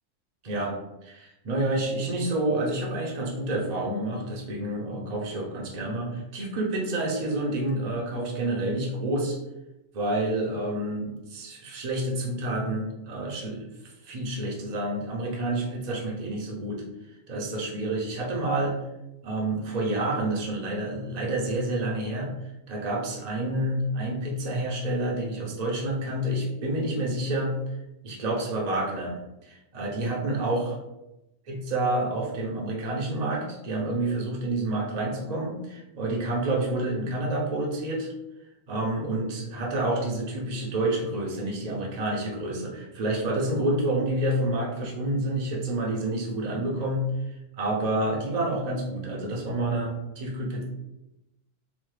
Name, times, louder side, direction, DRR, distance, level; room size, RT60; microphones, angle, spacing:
voice 1, 0.4-0.7 1.0-9.4 9.9-13.7 14.0-16.8 17.3-18.8 19.2-22.3 22.7-27.5 28.0-30.8 31.5-38.1 38.7-47.0 47.6-50.6, right 1 dB, 40° right, -2 dB, 0.6 m, -28 dB
3.0 x 2.2 x 3.1 m, 0.94 s
omnidirectional pair, 1.4 m